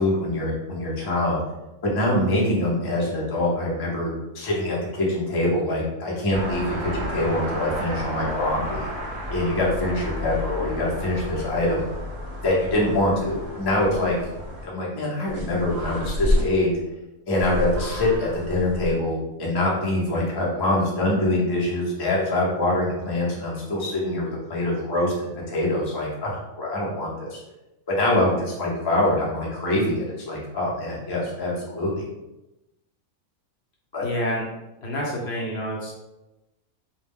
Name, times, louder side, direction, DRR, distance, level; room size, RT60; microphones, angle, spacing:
voice 1, 0.0-1.4 1.8-8.9 9.3-11.9 12.4-14.2 14.6-16.7 17.3-27.4 27.9-32.1 33.9-34.0, left 1 dB, 35° left, -4 dB, 0.3 m, -24 dB
sound 1, 6.3-14.7 15.3-16.4 17.4-18.9, equal, 60° right, 0.9 m, -30 dB
voice 2, 34.0-34.4 34.8-35.9, equal, 65° left, -3 dB, 0.7 m, -28 dB
2.3 x 2.1 x 3.5 m, 0.99 s
omnidirectional pair, 1.4 m